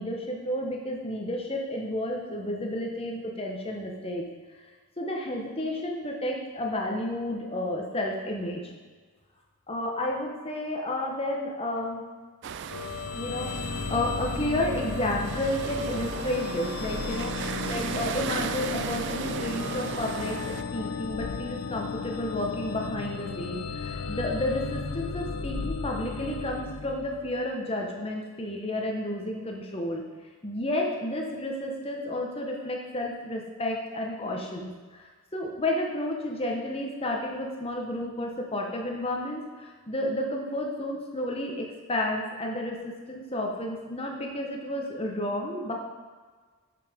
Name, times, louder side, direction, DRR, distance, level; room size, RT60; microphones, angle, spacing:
voice 1, 0.0-4.2 5.0-8.6 9.7-12.1 13.1-30.0 30.4-45.7, left 1 dB, 25° left, 0 dB, 1.2 m, -31 dB
sound 1, 12.4-20.6, right 7 dB, 55° right, 0.3 m, -36 dB
sound 2, 12.7-27.4, left 5 dB, 85° left, 0.6 m, -35 dB
7.0 x 6.7 x 5.2 m, 1.5 s
head